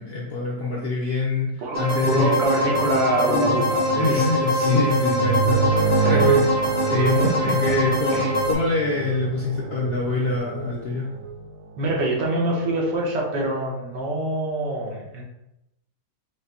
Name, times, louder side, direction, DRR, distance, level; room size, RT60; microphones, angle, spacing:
voice 1, 0.0-2.4 3.2-3.7 3.9-11.1, left 3 dB, 60° left, -4 dB, 0.6 m, -25 dB
voice 2, 1.6-4.3 5.7-6.3 7.2-7.3 8.1-8.3 11.8-15.2, right 1 dB, 85° right, -2 dB, 1.6 m, -25 dB
sound 1, 1.7-8.5, left 1 dB, 25° right, 0.3 m, -24 dB
sound 2, 2.0-12.2 12.6-12.8 13.4-13.5, right 6 dB, 65° right, 0.9 m, -28 dB
sound 3, 2.6-10.4, right 1 dB, 85° left, 1.4 m, -40 dB
5.0 x 2.0 x 4.2 m, 0.91 s
omnidirectional pair, 1.9 m